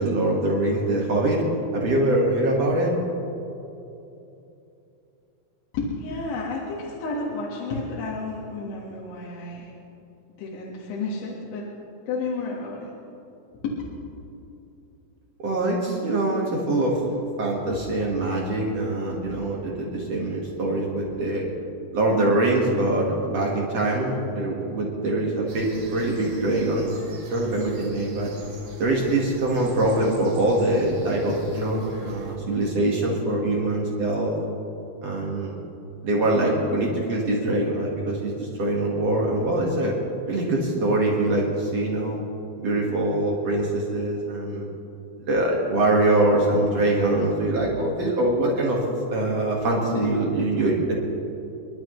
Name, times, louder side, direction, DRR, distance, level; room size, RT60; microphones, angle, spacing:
voice 1, 0.0-1.4 1.7-2.9 15.4-17.0 17.4-21.4 21.9-26.9 27.3-28.3 28.8-34.3 35.0-35.5 36.0-39.9 40.3-42.2 42.6-44.7 45.3-48.8 49.1-50.9, right 2 dB, 65° right, -3 dB, 1.6 m, -23 dB
voice 2, 5.7-9.7 10.4-11.7 12.1-12.9 13.6-13.8, left 3 dB, 75° left, -5 dB, 3.9 m, -31 dB
sound 1, 25.5-32.4, left 4 dB, 50° right, 2.9 m, -41 dB
29.5 x 11.5 x 3.2 m, 2.8 s
omnidirectional pair, 5.6 m